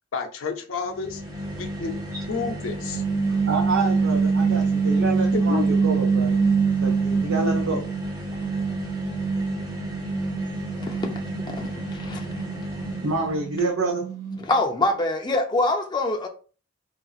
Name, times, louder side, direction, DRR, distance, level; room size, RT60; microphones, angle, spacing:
voice 1, 0.1-1.2 1.6-2.0 2.3-3.0 5.3-5.8, left 5 dB, 85° left, 0.6 m, -30 dB
sound 1, 0.9-13.5, equal, 20° right, 0.8 m, -33 dB
sound 2, 2.8-8.0 8.4-14.6, right 5 dB, 40° right, 1.2 m, -25 dB
voice 2, 3.3-6.4 6.8-7.9 13.0-14.0, right 3 dB, 80° right, 0.6 m, -27 dB
voice 3, 10.8-11.2 11.5-12.3 14.5-16.3, left 2 dB, 20° left, 0.4 m, -25 dB
2.9 x 2.5 x 2.4 m
head